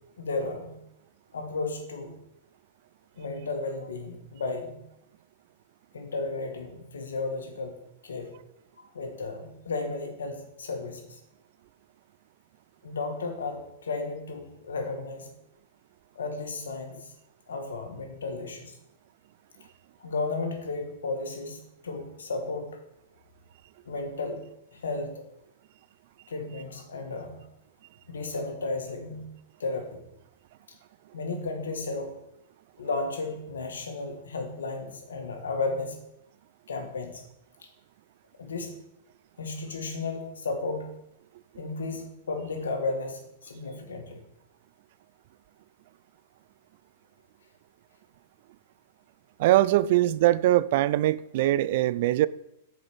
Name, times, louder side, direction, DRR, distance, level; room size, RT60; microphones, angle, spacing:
voice 1, 0.2-0.7 1.3-2.2 3.2-4.7 5.9-7.7 8.0-8.3 8.8-11.2 12.8-15.3 16.2-17.1 17.5-18.8 20.0-22.7 23.9-24.4 24.7-25.2 26.3-27.4 28.1-29.3 29.6-30.0 31.1-32.1 32.8-36.0 36.7-37.2 38.4-38.7 39.4-40.9 41.6-44.2, left 3 dB, 85° left, 1.8 m, -33 dB
voice 2, 49.4-52.3, right 15 dB, 60° right, 0.3 m, -22 dB
7.1 x 5.0 x 6.1 m
hypercardioid pair, 115°, 0 cm